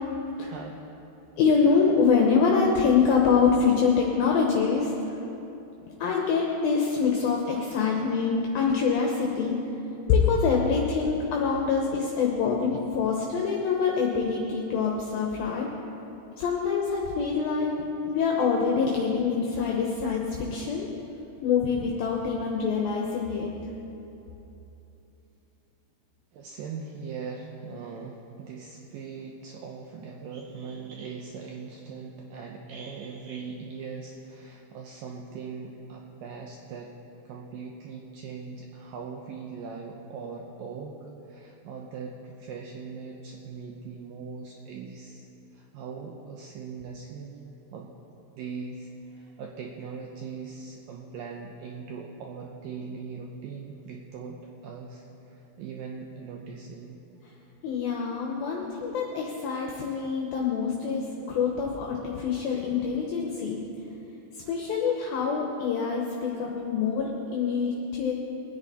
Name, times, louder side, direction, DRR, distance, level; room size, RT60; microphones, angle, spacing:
voice 1, 0.3-0.8 26.3-36.9 37.3-41.0 41.3-45.3 45.5-47.3 47.7-47.9 48.4-57.0 64.4-64.6, right 5 dB, 90° right, 0 dB, 2.0 m, -40 dB
voice 2, 1.4-5.1 6.0-9.6 10.1-15.7 16.4-17.7 18.1-20.9 21.4-23.5 57.6-63.6 64.5-68.1, left 5 dB, 70° left, -1 dB, 2.5 m, -25 dB
22.5 x 9.8 x 4.2 m, 3.0 s
omnidirectional pair, 5.1 m